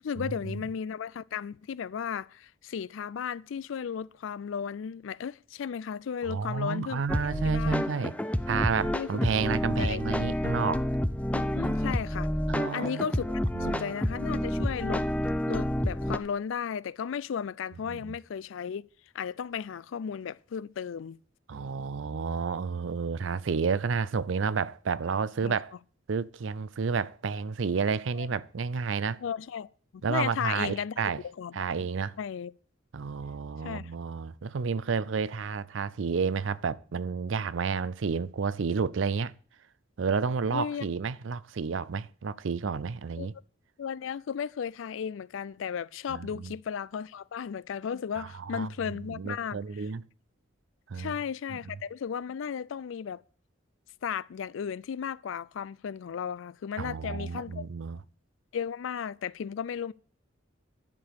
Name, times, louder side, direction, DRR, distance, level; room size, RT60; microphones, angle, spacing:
voice 1, 0.0-7.0 7.4-7.9 8.9-10.0 11.3-12.3 12.7-15.1 15.5-18.9 19.1-21.2 25.4-25.6 28.2-28.3 29.2-30.9 31.2-31.6 32.2-32.5 33.6-33.9 40.5-40.8 43.2-43.3 43.8-49.9 50.9-53.2 54.0-57.7 58.5-59.9, left 7 dB, 75° left, 0.4 m, -35 dB
voice 2, 6.3-8.1 8.5-10.9 12.5-13.0 13.5-13.9 17.9-18.2 21.5-25.7 26.1-29.2 30.0-31.2 31.5-32.2 32.9-39.3 40.0-43.3 46.1-46.5 48.2-48.7 49.1-50.0 50.9-51.2 51.5-51.6 56.8-58.0, right 5 dB, 75° right, 0.5 m, -31 dB
sound 1, 7.1-16.2, left 1 dB, 5° left, 0.5 m, -29 dB
11.0 x 5.0 x 8.2 m
head